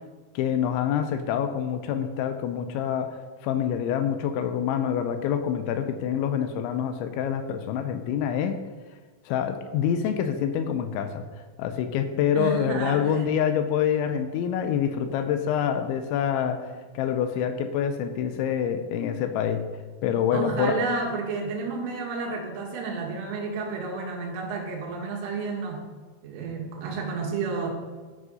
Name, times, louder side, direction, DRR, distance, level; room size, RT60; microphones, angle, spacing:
voice 1, 0.4-8.6 9.3-11.2 11.6-19.7 20.0-20.8, left 8 dB, 80° left, 8 dB, 2.9 m, -26 dB
voice 2, 12.4-13.3 20.3-25.8 26.2-27.7, right 4 dB, 85° right, 1 dB, 4.2 m, -31 dB
12.5 x 6.6 x 5.5 m, 1.4 s
omnidirectional pair, 5.6 m